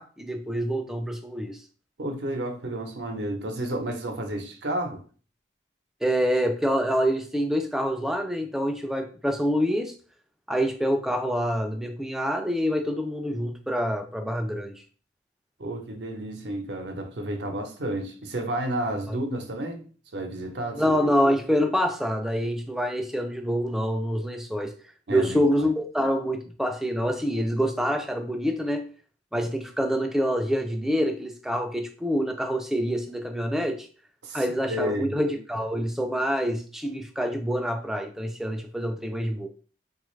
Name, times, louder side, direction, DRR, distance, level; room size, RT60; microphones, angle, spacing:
voice 1, 0.0-1.6 6.0-9.9 10.5-14.8 19.1-19.2 20.7-24.8 25.1-28.9 29.3-33.9 34.3-39.5, equal, ahead, 0.3 m, -26 dB
voice 2, 2.0-5.0 15.6-19.8 20.1-21.1 25.1-25.7 34.2-35.2, right 1 dB, 75° right, 0.7 m, -31 dB
3.8 x 2.3 x 3.1 m
head